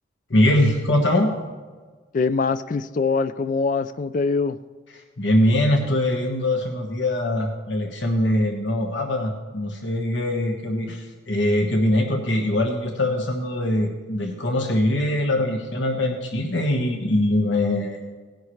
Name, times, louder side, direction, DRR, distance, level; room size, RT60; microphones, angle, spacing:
voice 1, 0.3-1.3 5.2-18.0, left 1 dB, 70° left, 2 dB, 1.3 m, -22 dB
voice 2, 2.1-4.6, left 4 dB, 40° left, 12 dB, 0.3 m, -23 dB
18.5 x 10.5 x 3.2 m, 1.4 s
head